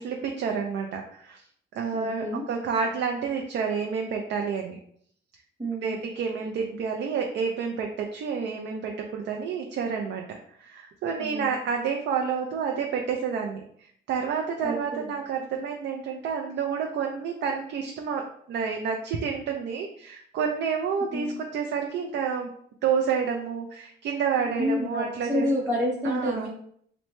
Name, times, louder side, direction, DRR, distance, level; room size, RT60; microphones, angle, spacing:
voice 1, 0.0-1.4 1.7-4.8 5.8-21.3 21.5-22.5 22.8-25.5 26.0-26.5, right 6 dB, 65° right, 2 dB, 0.4 m, -29 dB
voice 2, 1.9-2.4 5.6-6.0 11.2-11.5 14.6-15.1 21.1-21.4 24.6-26.5, left 1 dB, 10° right, -7 dB, 0.9 m, -29 dB
2.9 x 2.1 x 3.0 m, 0.64 s
cardioid pair, 90°, 20 cm